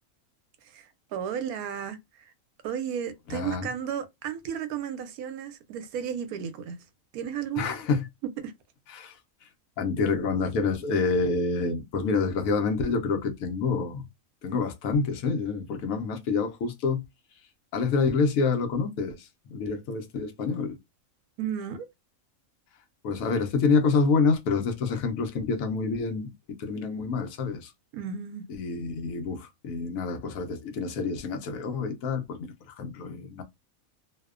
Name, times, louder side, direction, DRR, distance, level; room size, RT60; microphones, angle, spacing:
voice 1, 0.6-2.3 2.6-6.8 7.1-7.7 8.4-8.5 21.4-21.9 27.9-28.5, right 8 dB, 90° right, 1.1 m, -34 dB
voice 2, 3.3-3.7 7.6-8.1 8.9-9.5 9.8-14.1 14.4-17.0 17.7-20.8 23.0-26.3 26.6-27.7 28.5-33.4, left 4 dB, 75° left, 1.0 m, -27 dB
2.7 x 2.1 x 2.3 m
omnidirectional pair, 1.5 m